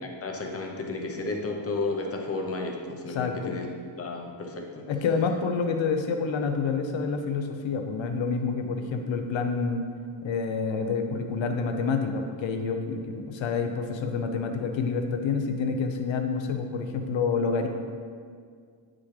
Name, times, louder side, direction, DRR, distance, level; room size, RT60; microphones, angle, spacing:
voice 1, 0.0-4.8, left 3 dB, 30° left, 1 dB, 0.8 m, -33 dB
voice 2, 3.1-3.6 4.9-9.8 10.2-17.7, left 5 dB, 65° left, 5 dB, 0.8 m, -28 dB
8.8 x 6.2 x 3.3 m, 2.1 s
wide cardioid pair, 175°, 50 cm